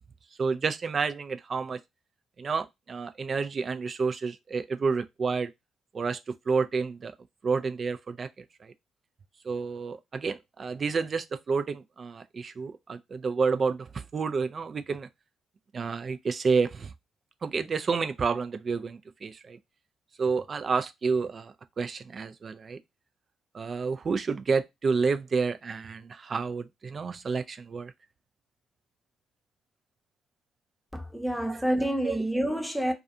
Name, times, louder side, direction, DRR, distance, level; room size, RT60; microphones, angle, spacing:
voice 1, 0.4-1.8 2.4-5.5 5.9-6.2 6.5-7.1 7.4-8.3 8.6-8.7 9.4-15.1 15.7-16.9 17.4-19.6 20.2-22.8 23.5-27.9 32.1-32.2, right 5 dB, 45° right, 0.4 m, -29 dB
voice 2, 30.9-32.9, right 1 dB, ahead, 0.8 m, -28 dB
2.4 x 2.4 x 2.5 m
hypercardioid pair, 45°, 0 cm